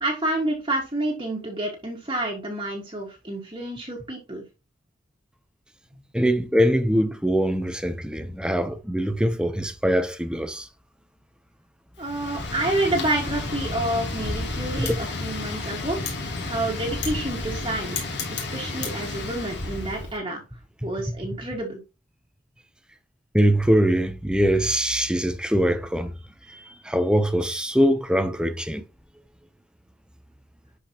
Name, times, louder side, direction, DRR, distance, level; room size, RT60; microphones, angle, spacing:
voice 1, 0.0-4.4 12.0-16.0 16.4-18.0 18.3-20.4 20.8-21.8, right 1 dB, 25° right, 1.7 m, -28 dB
voice 2, 6.1-10.7 14.8-15.0 20.8-20.9 23.3-26.1 26.5-28.8, equal, 5° right, 0.7 m, -23 dB
Wind, 12.0-20.1, left 3 dB, 55° left, 3.0 m, -31 dB
11.0 x 5.0 x 3.0 m
head